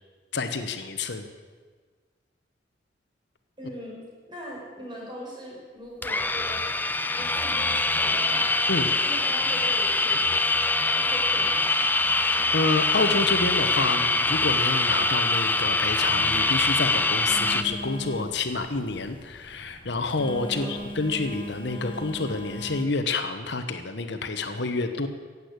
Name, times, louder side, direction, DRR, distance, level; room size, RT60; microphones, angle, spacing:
voice 1, 0.3-1.3 8.7-8.9 10.1-10.2 12.2-25.1, left 3 dB, 65° left, 7 dB, 1.1 m, -28 dB
voice 2, 3.6-4.0 4.3-6.8 7.2-8.7 9.0-10.3 10.7-12.0 20.5-20.7, equal, 25° right, -3 dB, 5.3 m, -40 dB
sound 1, 6.0-17.6, left 2 dB, 10° left, 0.6 m, -24 dB
Telephone, 17.3-22.8, equal, 30° left, 1.2 m, -39 dB
16.0 x 8.5 x 8.2 m, 1.5 s
head